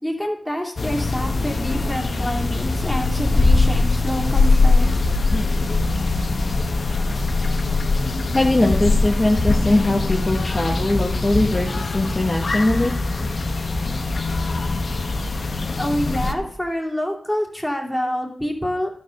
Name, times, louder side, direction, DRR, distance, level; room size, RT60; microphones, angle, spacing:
voice 1, 0.0-5.0 15.8-18.9, equal, ahead, -1 dB, 2.6 m, -27 dB
sound 1, 0.8-16.3, left 3 dB, 55° left, 1.0 m, -21 dB
voice 2, 8.3-12.9, left 1 dB, 25° left, -1 dB, 1.2 m, -20 dB
12.0 x 4.7 x 6.4 m, 0.62 s
cardioid pair, 65°, 0 cm